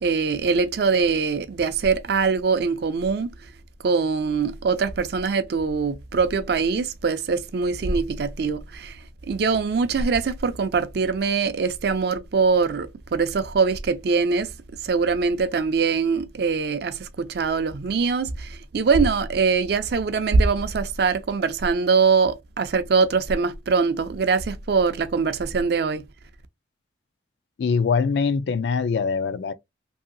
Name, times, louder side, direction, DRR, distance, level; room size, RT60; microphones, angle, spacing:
voice 1, 0.0-3.3 3.8-9.0 9.3-14.5 14.8-26.0, right 5 dB, 55° right, 0.4 m, -23 dB
voice 2, 27.6-29.5, left 5 dB, 65° left, 0.3 m, -23 dB
2.7 x 2.7 x 2.5 m
head